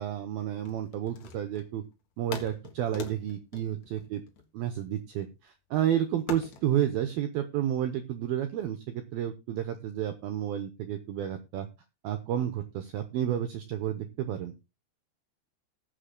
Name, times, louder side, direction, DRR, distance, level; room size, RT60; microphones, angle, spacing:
voice 1, 0.0-1.8 2.2-4.2 4.5-11.7 12.0-14.5, right 11 dB, 80° right, 8 dB, 2.1 m, -31 dB
sound 1, 0.6-1.8 2.3-4.8 6.3-6.7, left 6 dB, 55° left, 2.1 m, -42 dB
19.5 x 7.7 x 2.2 m, 0.27 s
omnidirectional pair, 5.4 m